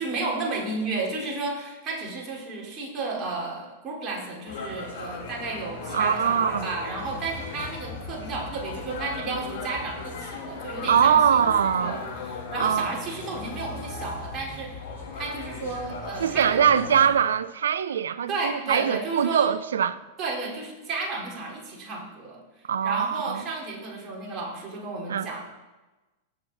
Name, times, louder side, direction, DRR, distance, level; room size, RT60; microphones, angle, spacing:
voice 1, 0.0-11.5 11.8-14.8 15.1-16.7 18.3-19.5 20.2-22.4 22.8-25.5, right 3 dB, 35° right, 4.2 m, -32 dB
sound 1, 4.5-17.1, left 4 dB, 75° left, 3.3 m, -37 dB
voice 2, 5.9-6.7 10.9-12.0 12.6-12.9 16.2-20.0 22.7-23.4 25.1-25.3, right 8 dB, 80° right, 0.6 m, -22 dB
18.0 x 7.3 x 4.1 m
hypercardioid pair, 100°, 0 cm